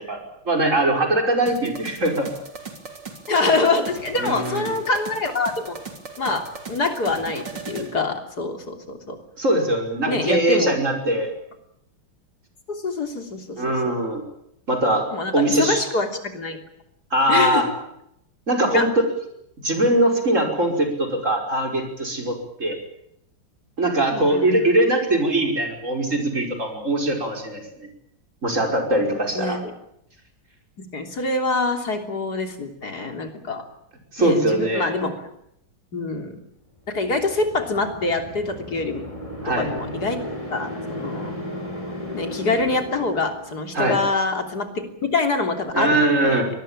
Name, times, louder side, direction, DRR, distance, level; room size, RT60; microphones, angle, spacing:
voice 1, 0.0-2.3 4.2-4.8 9.4-11.3 13.6-14.2 14.7-15.1 15.3-15.8 17.1-17.7 18.5-18.9 19.6-22.8 23.8-27.9 28.4-29.6 34.1-34.9 39.4-39.7 43.7-44.0 45.7-46.5, right 1 dB, 35° right, 3 dB, 5.7 m, -21 dB
sound 1, 1.5-7.9, right 5 dB, 60° right, 4.1 m, -37 dB
voice 2, 3.3-5.8 6.2-9.2 10.1-10.7 12.7-13.6 13.9-14.0 15.1-16.1 16.3-16.6 17.3-17.6 18.7-18.9 20.4-20.5 24.1-24.7 29.4-29.6 30.9-33.6 34.2-35.1 35.9-36.4 36.9-39.1 39.5-40.2 40.5-41.3 42.1-46.4, left 3 dB, 50° left, 5 dB, 3.8 m, -25 dB
sound 2, 36.9-43.8, equal, 15° left, 5.5 m, -35 dB
24.5 x 20.0 x 8.8 m, 0.76 s
omnidirectional pair, 2.2 m